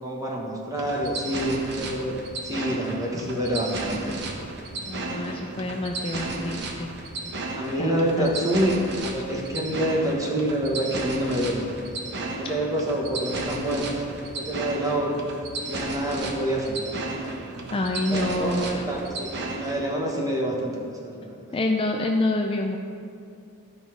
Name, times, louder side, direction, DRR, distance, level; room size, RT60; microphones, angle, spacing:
voice 1, 0.0-2.2 2.4-4.1 7.5-11.9 12.2-14.0 14.3-15.1 15.7-17.0 18.0-19.3 19.6-21.3, right 1 dB, 15° right, -1 dB, 1.2 m, -27 dB
sound 1, 0.7-19.9, right 2 dB, 50° right, 1.0 m, -34 dB
voice 2, 4.9-6.9 7.8-8.3 17.7-18.8 21.5-22.8, left 2 dB, 25° left, 2 dB, 0.4 m, -27 dB
12.5 x 5.5 x 4.6 m, 2.4 s
head